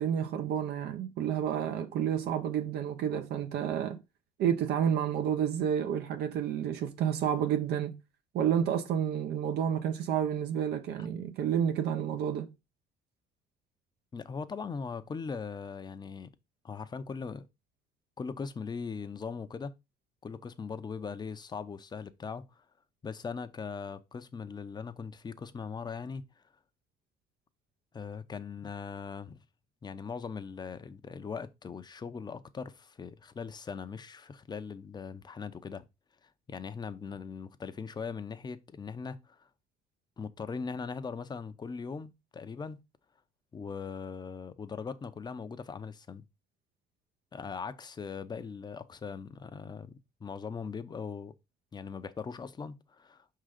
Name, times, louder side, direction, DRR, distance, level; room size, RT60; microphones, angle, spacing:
voice 1, 0.0-4.0 4.4-7.9 8.3-12.5, right 9 dB, 75° right, 0.8 m, -30 dB
voice 2, 14.1-16.3 16.6-17.5 18.2-19.7 20.2-22.6 23.0-26.2 27.9-29.4 29.8-35.8 36.5-39.4 40.2-42.8 43.5-46.2 47.3-51.3 51.7-53.4, left 5 dB, 25° left, 0.6 m, -40 dB
5.4 x 3.8 x 4.9 m
cardioid pair, 110°, 17 cm